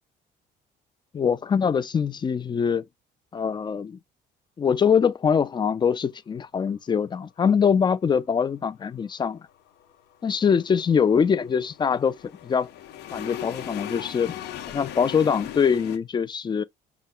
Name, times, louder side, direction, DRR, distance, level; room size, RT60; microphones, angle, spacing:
voice 1, 1.1-2.8 3.3-4.0 4.6-9.4 10.2-12.2 12.4-12.7 13.1-14.3 14.7-16.6, left 6 dB, 25° left, 0.4 m, -23 dB
sound 1, 9.1-16.0, left 11 dB, 80° left, 0.9 m, -39 dB
5.3 x 2.2 x 3.7 m
cardioid pair, 110°, 17 cm